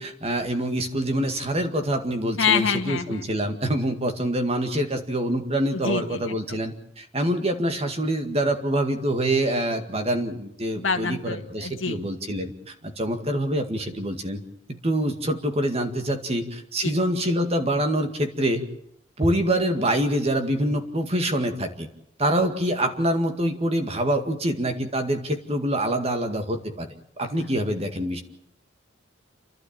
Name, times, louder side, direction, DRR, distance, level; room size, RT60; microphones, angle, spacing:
voice 1, 0.0-14.4 14.8-18.6 19.2-21.9 22.2-26.9 27.2-28.2, right 1 dB, 30° right, 6 dB, 2.0 m, -25 dB
voice 2, 2.4-3.3 5.7-6.2 10.8-12.0 16.8-16.9, left 5 dB, 80° left, 6 dB, 1.8 m, -26 dB
29.0 x 12.0 x 8.9 m, 0.75 s
head